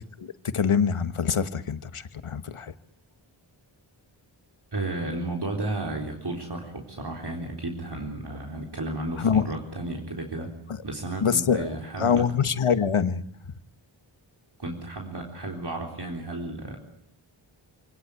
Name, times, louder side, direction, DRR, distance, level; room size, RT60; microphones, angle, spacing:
voice 1, 0.2-2.7 9.2-9.5 10.7-10.8 11.2-11.7 12.0-13.2, left 7 dB, 90° left, 11 dB, 1.3 m, -24 dB
voice 2, 4.7-10.5 10.8-12.3 14.6-16.8, right 2 dB, 55° right, 0 dB, 4.1 m, -33 dB
27.0 x 18.5 x 8.2 m, 0.70 s
wide cardioid pair, 60°, 49 cm